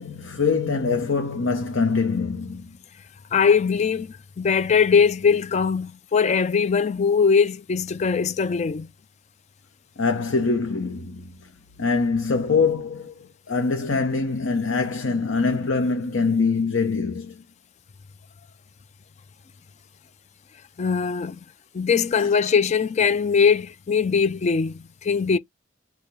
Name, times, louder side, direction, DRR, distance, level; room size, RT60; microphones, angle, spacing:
voice 1, 0.0-2.7 10.0-11.3 11.8-13.1 13.5-17.4 22.2-22.3, left 4 dB, 75° left, 0.8 m, -24 dB
voice 2, 3.3-8.9 20.8-21.4 21.7-25.4, left 6 dB, 35° left, 0.3 m, -21 dB
6.7 x 2.3 x 3.3 m
head